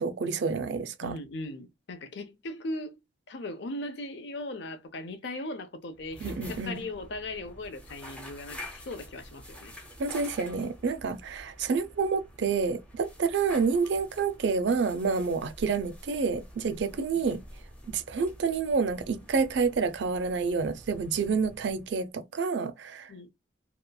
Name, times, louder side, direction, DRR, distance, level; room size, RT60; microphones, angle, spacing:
voice 1, 0.0-1.1 6.2-6.8 10.0-17.4 17.9-23.3, right 5 dB, 60° right, 0.4 m, -28 dB
voice 2, 1.0-3.0 3.3-9.7 16.6-16.8 23.1-23.3, left 2 dB, 60° left, 0.5 m, -38 dB
sound 1, 5.9-22.1, equal, 5° left, 0.5 m, -48 dB
2.9 x 2.3 x 2.2 m
head